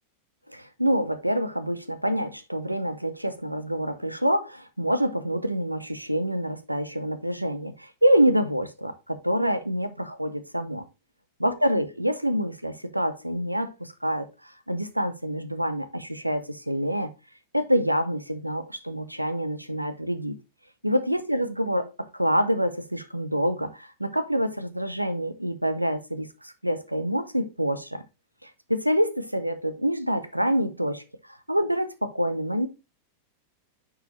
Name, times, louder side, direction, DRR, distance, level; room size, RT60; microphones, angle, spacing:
voice 1, 0.5-10.9 11.4-17.1 17.5-20.4 20.8-28.0 28.4-32.7, equal, 90° right, 0.7 m, -26 dB
9.9 x 4.8 x 3.1 m
figure-of-eight pair, 90°, 0 cm